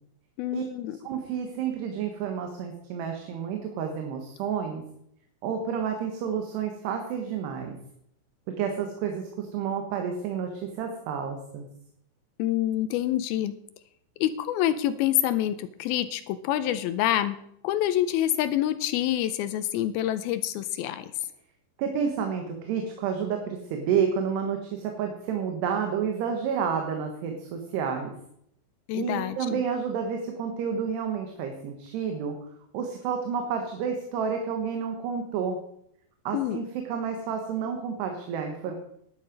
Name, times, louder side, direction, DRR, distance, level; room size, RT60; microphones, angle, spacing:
voice 1, 0.4-1.0 12.4-13.6 14.2-17.4 17.6-21.1 28.9-29.6 36.3-36.6, left 12 dB, 80° left, 12 dB, 2.2 m, -27 dB
voice 2, 1.0-4.8 5.4-7.8 8.6-11.7 21.8-28.1 28.9-32.4 32.7-35.6 36.2-38.7, right 7 dB, 80° right, 4 dB, 3.4 m, -30 dB
11.0 x 10.5 x 5.2 m, 0.72 s
omnidirectional pair, 4.8 m